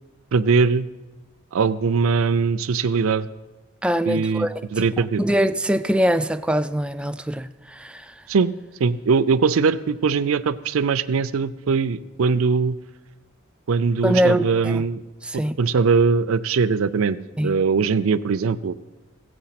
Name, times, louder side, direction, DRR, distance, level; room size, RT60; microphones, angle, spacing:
voice 1, 0.3-0.9 1.5-3.3 4.1-5.2 8.3-8.5 8.8-12.8 13.7-15.0 15.3-17.2 17.4-18.7, right 5 dB, 80° right, 0.5 m, -21 dB
voice 2, 3.8-4.8 5.2-8.1 14.0-14.8 15.3-15.6 17.4-17.6, equal, 5° right, 0.3 m, -23 dB
16.0 x 7.8 x 5.8 m
head